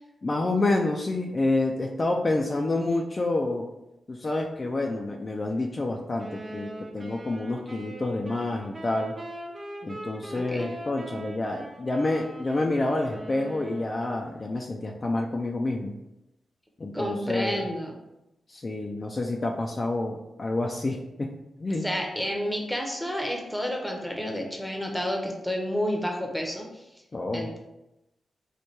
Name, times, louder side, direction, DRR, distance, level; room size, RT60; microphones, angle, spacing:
voice 1, 0.2-3.7 4.1-9.2 9.8-16.0 16.8-17.7 18.5-21.9 27.1-27.5, left 2 dB, 35° left, 1 dB, 0.3 m, -28 dB
sound 1, 6.2-14.2, right 1 dB, 35° right, 0.7 m, -41 dB
voice 2, 10.3-10.7 16.9-17.9 21.8-26.8 27.3-27.6, equal, ahead, 1 dB, 0.7 m, -30 dB
3.1 x 2.2 x 4.2 m, 0.92 s
cardioid pair, 80°, 0 cm